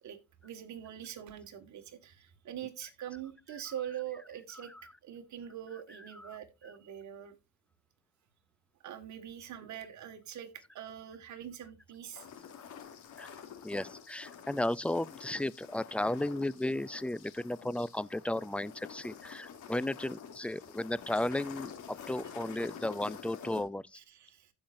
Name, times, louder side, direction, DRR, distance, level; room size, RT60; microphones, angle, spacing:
voice 1, 0.4-4.7 5.0-7.4 8.8-12.3 23.9-24.5, right 10 dB, 70° right, 1.9 m, -43 dB
voice 2, 4.5-4.9 6.1-6.4 13.2-13.3 13.6-24.0, left 1 dB, 5° left, 0.4 m, -34 dB
sound 1, 12.1-23.6, left 7 dB, 80° left, 2.9 m, -49 dB
15.0 x 5.7 x 2.6 m
cardioid pair, 90°, 30 cm